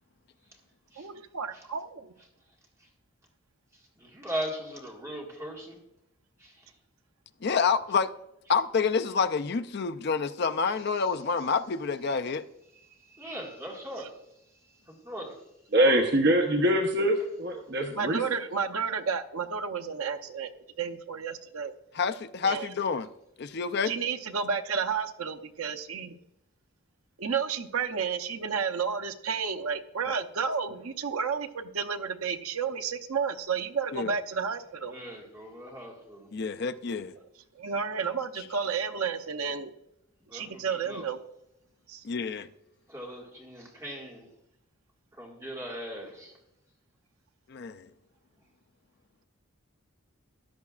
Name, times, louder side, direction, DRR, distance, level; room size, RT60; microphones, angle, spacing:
voice 1, 1.0-2.1 14.0-14.1 17.9-20.5 20.8-21.7 22.4-22.7 23.8-26.2 27.2-34.9 37.5-39.7 40.3-41.2 41.9-42.0, right 6 dB, 85° right, 6 dB, 0.7 m, -31 dB
voice 2, 3.7-5.8 6.4-6.7 10.7-11.1 12.9-14.2 14.9-15.4 34.9-36.3 40.3-41.1 42.9-44.3 45.1-46.3, equal, 15° right, -2 dB, 1.9 m, -40 dB
voice 3, 7.4-8.1 8.5-12.4 21.9-23.1 23.4-23.9 33.9-34.1 36.3-37.1 42.0-42.5 47.5-47.9, left 5 dB, 50° left, 11 dB, 0.4 m, -28 dB
voice 4, 15.7-18.2, right 1 dB, 50° right, 2 dB, 1.0 m, -24 dB
14.0 x 10.5 x 2.4 m, 0.86 s
head